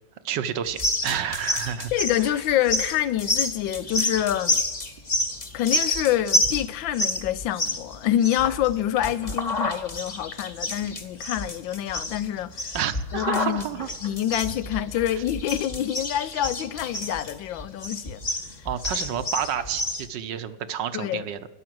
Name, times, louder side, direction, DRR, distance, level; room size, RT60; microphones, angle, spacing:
voice 1, 0.2-1.9 2.2-2.3 12.7-13.9 18.6-21.4, right 9 dB, 75° right, 1.4 m, -30 dB
sound 1, 0.7-20.1, left 1 dB, 25° left, 1.2 m, -29 dB
voice 2, 1.9-4.6 5.5-12.8 13.1-13.6 14.0-18.2 18.6-18.7 20.9-21.2, left 12 dB, 80° left, 1.4 m, -26 dB
12.5 x 9.8 x 7.7 m
omnidirectional pair, 2.1 m